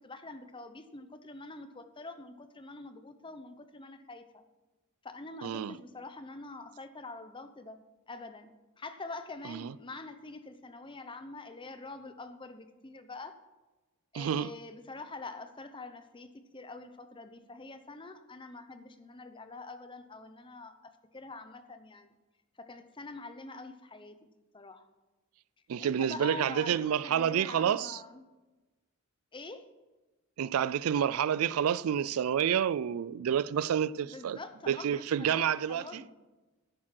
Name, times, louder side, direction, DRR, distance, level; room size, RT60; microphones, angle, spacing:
voice 1, 0.0-4.4 5.0-7.8 8.1-8.5 8.8-13.3 14.1-16.3 16.5-22.1 22.6-24.2 24.5-24.9 25.8-28.2 29.3-29.6 34.0-36.1, left 3 dB, 25° left, 0.8 m, -45 dB
voice 2, 5.4-5.8 9.5-9.7 14.1-14.5 25.7-28.0 30.4-34.4 34.7-36.0, right 8 dB, 85° right, 0.4 m, -29 dB
11.0 x 8.8 x 5.9 m
head